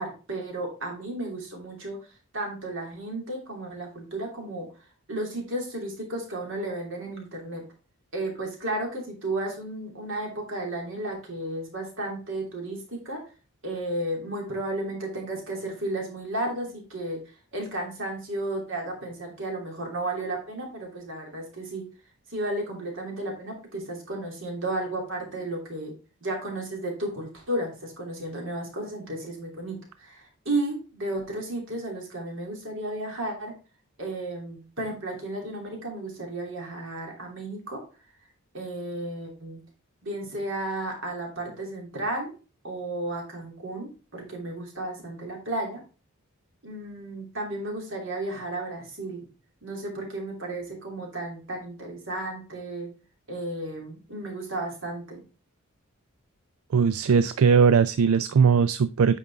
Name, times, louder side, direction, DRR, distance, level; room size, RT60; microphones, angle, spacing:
voice 1, 0.0-2.0 2.3-4.7 5.1-7.6 8.1-13.2 13.6-17.2 17.5-21.8 22.3-25.9 26.2-33.5 34.0-37.8 38.5-39.6 40.0-42.3 42.6-45.8 46.6-49.2 49.6-52.9 53.3-55.2, right 1 dB, 65° right, 0 dB, 3.0 m, -33 dB
voice 2, 56.7-59.2, right 6 dB, 80° right, 14 dB, 0.4 m, -19 dB
9.0 x 5.5 x 3.5 m, 0.35 s
head